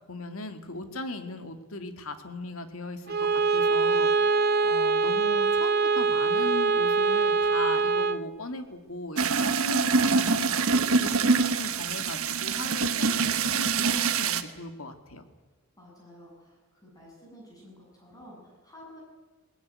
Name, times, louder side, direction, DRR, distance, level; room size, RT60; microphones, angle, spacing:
voice 1, 0.1-4.4 4.6-15.2, left 2 dB, 70° left, 7 dB, 2.2 m, -38 dB
Bowed string instrument, 3.1-8.3, right 4 dB, 45° right, 0.8 m, -24 dB
sound 1, 9.2-14.4, right 4 dB, 70° right, 1.3 m, -25 dB
voice 2, 15.8-19.0, equal, 15° left, -2 dB, 7.6 m, -51 dB
20.0 x 19.0 x 9.6 m, 1.3 s
head